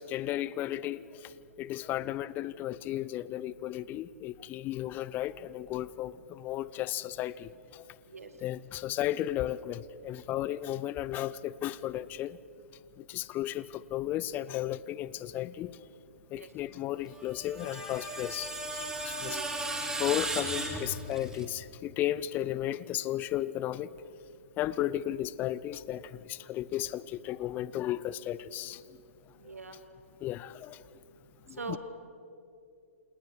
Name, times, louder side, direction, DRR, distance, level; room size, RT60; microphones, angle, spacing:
voice 1, 0.0-1.3 1.6-7.8 8.4-12.4 13.0-15.8 16.3-19.4 20.0-23.9 24.6-28.8 30.2-30.8 31.5-31.8, left 13 dB, 25° left, 0.5 m, -34 dB
voice 2, 8.1-8.3 16.3-16.5 19.2-19.4 29.5-29.7 31.6-31.8, right 4 dB, 75° right, 2.4 m, -40 dB
Screech, 17.2-21.5, right 2 dB, 5° right, 2.9 m, -36 dB
28.5 x 28.0 x 4.7 m
figure-of-eight pair, 115°, 8 cm